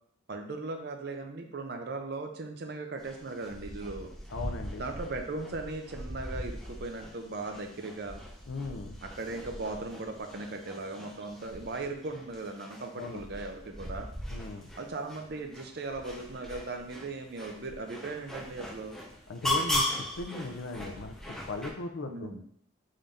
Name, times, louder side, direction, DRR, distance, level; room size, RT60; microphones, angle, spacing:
voice 1, 0.3-4.1 4.8-8.2 9.0-14.1 14.7-19.0 22.0-22.4, right 3 dB, 50° right, 4 dB, 0.5 m, -38 dB
sound 1, 3.0-21.7, left 1 dB, 5° left, 0.5 m, -39 dB
voice 2, 4.3-4.8 8.5-9.0 13.0-13.2 14.3-14.7 19.3-22.4, left 3 dB, 75° left, 6 dB, 0.5 m, -38 dB
3.7 x 2.6 x 3.4 m, 0.64 s
head